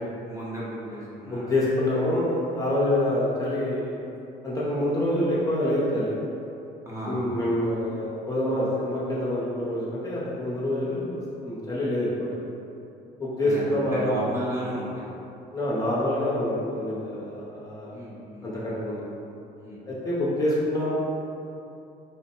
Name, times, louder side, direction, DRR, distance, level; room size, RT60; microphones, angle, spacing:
voice 1, 0.0-1.5 6.8-7.4 13.4-15.0 17.9-18.5 19.6-19.8, right 1 dB, 15° right, -7 dB, 0.9 m, -34 dB
voice 2, 1.2-3.9 4.4-6.1 7.1-12.3 13.2-14.3 15.5-18.0 18.4-19.0 19.8-20.9, left 1 dB, 20° left, -7 dB, 0.7 m, -26 dB
3.4 x 2.1 x 4.2 m, 2.8 s
cardioid pair, 110°, 17 cm